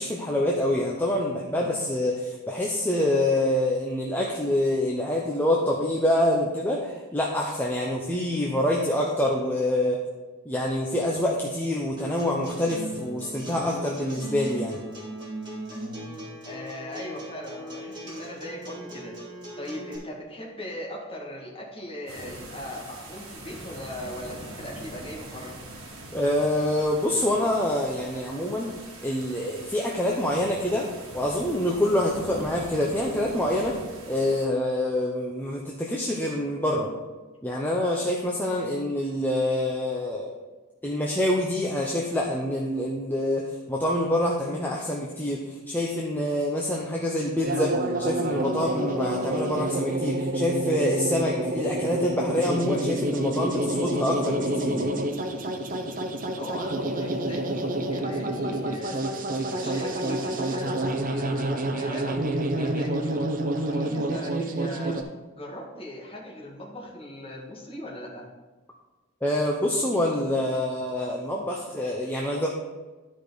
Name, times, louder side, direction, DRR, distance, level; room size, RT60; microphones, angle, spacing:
voice 1, 0.0-10.0 10.5-14.8 26.1-28.7 29.0-30.9 31.1-33.8 34.1-36.9 37.4-40.3 40.8-54.9 69.2-72.5, left 1 dB, 10° left, -2 dB, 0.7 m, -26 dB
Acoustic guitar, 12.0-20.0, right 1 dB, 20° right, 2.6 m, -38 dB
voice 2, 16.4-19.1 19.6-25.6 56.3-63.2 63.6-65.0 65.3-68.2, left 1 dB, 25° left, -3 dB, 2.0 m, -39 dB
sound 1, 22.1-34.5, right 1 dB, 65° right, 1.8 m, -42 dB
sound 2, 47.4-65.0, right 1 dB, 40° right, 0.8 m, -28 dB
12.0 x 5.0 x 4.0 m, 1.2 s
head